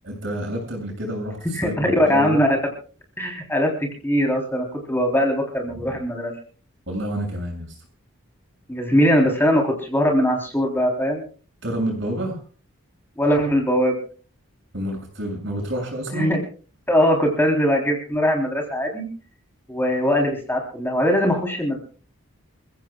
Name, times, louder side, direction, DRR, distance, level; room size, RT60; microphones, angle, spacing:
voice 1, 0.0-2.4 5.7-5.8 6.9-7.8 11.6-12.4 14.7-16.3, equal, 60° right, 2 dB, 7.1 m, -29 dB
voice 2, 1.5-2.6 3.2-6.3 8.7-11.2 13.2-14.0 16.1-16.4 16.9-19.1 19.7-21.8, equal, 10° left, 1 dB, 3.5 m, -21 dB
28.5 x 15.5 x 2.3 m, 0.38 s
head